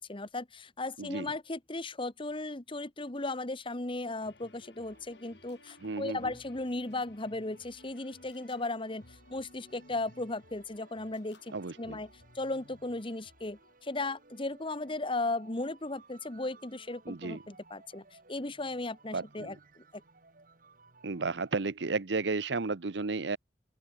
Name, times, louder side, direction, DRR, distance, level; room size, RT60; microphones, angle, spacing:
voice 1, 0.0-12.1 12.3-20.0, left 2 dB, 30° left, 1.4 m, -36 dB
voice 2, 1.0-1.3 5.8-6.3 11.5-12.0 17.0-17.4 19.1-19.6 21.0-23.4, right 3 dB, 80° right, 0.9 m, -33 dB
sound 1, 4.2-13.7, left 2 dB, 75° left, 3.2 m, -58 dB
sound 2, 4.8-21.5, right 3 dB, 50° right, 3.2 m, -61 dB
open air
head